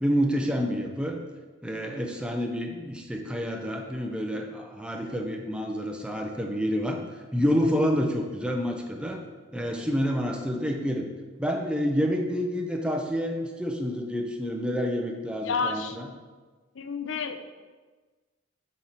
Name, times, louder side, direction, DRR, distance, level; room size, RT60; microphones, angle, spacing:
voice 1, 0.0-1.2 1.6-7.0 7.3-9.2 9.5-11.1 11.4-16.1, equal, 5° right, 2 dB, 0.6 m, -28 dB
voice 2, 15.4-16.0 16.8-17.5, left 5 dB, 90° left, 8 dB, 0.5 m, -30 dB
7.6 x 4.3 x 4.1 m, 1.3 s
head